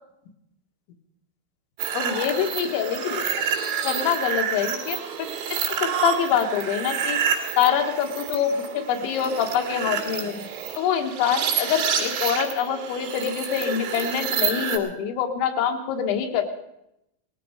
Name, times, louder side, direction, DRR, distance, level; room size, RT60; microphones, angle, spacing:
sound 1, 1.8-14.8, right 7 dB, 80° right, 4.6 m, -28 dB
voice 1, 1.9-3.2 3.8-5.0 5.8-7.2 7.6-10.5 10.8-16.4, left 8 dB, 85° left, 5 dB, 3.8 m, -25 dB
19.5 x 14.5 x 5.0 m, 0.83 s
omnidirectional pair, 5.3 m